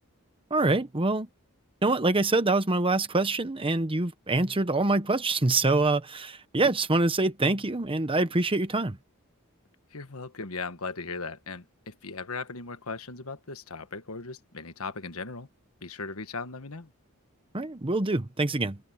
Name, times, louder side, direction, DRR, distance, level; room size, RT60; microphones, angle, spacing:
voice 1, 0.5-1.3 1.8-9.0 17.5-18.8, right 2 dB, 25° right, 1.0 m, -25 dB
voice 2, 9.9-15.5 15.8-16.9, left 4 dB, 75° left, 1.5 m, -38 dB
head